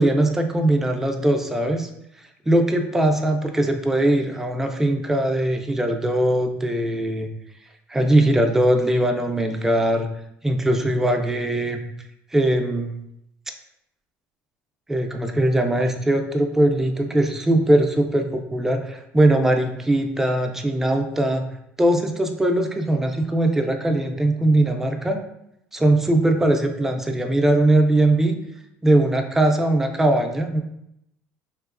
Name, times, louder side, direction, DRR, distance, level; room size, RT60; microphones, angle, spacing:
voice 1, 0.0-1.9 2.5-7.3 7.9-10.1 10.4-11.8 12.3-12.9 14.9-21.5 21.8-25.2 25.7-28.4 28.8-30.6, right 1 dB, 10° right, 4 dB, 0.3 m, -20 dB
3.9 x 2.8 x 2.4 m, 0.80 s
cardioid pair, 155°, 5 cm